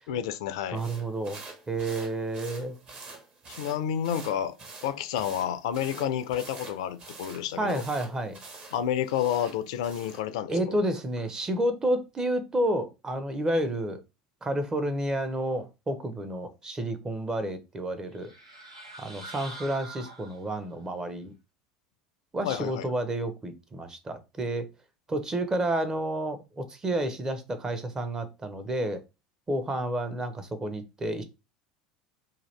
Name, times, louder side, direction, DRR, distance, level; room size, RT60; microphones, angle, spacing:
voice 1, 0.1-0.8 3.6-4.5 4.8-7.8 8.7-10.8 22.4-22.9, left 10 dB, 65° left, 0.4 m, -30 dB
voice 2, 0.7-1.4 1.7-2.8 7.6-8.4 10.5-14.0 14.4-18.3 19.0-21.3 22.3-24.7 25.1-29.0 29.5-31.2, right 1 dB, 20° right, 0.7 m, -30 dB
sound 1, 0.7-10.3, right 3 dB, 35° right, 1.1 m, -46 dB
sound 2, 18.1-20.7, right 2 dB, 80° right, 0.9 m, -45 dB
2.8 x 2.4 x 3.2 m
figure-of-eight pair, 70°, 3 cm